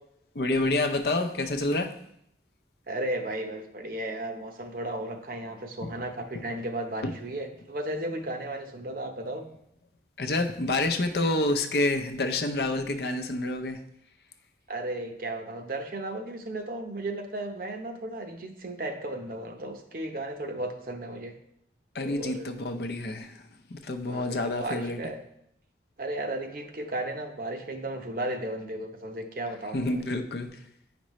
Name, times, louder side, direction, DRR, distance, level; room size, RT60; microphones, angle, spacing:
voice 1, 0.3-2.0 5.8-5.9 6.3-6.4 10.2-13.8 21.9-25.0 29.7-30.7, left 2 dB, 65° left, 6 dB, 0.6 m, -28 dB
voice 2, 2.9-9.4 14.7-21.3 22.0-22.5 24.1-25.2 26.0-29.8, right 1 dB, 50° right, 4 dB, 0.8 m, -34 dB
8.6 x 5.2 x 3.1 m, 0.73 s
head